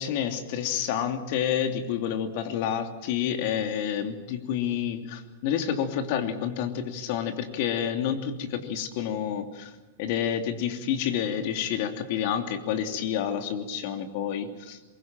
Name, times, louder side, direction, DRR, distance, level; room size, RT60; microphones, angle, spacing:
voice 1, 0.0-9.7 10.0-14.9, left 9 dB, 55° left, 5 dB, 2.9 m, -29 dB
23.5 x 22.5 x 7.6 m, 1.2 s
hypercardioid pair, 120°, 0 cm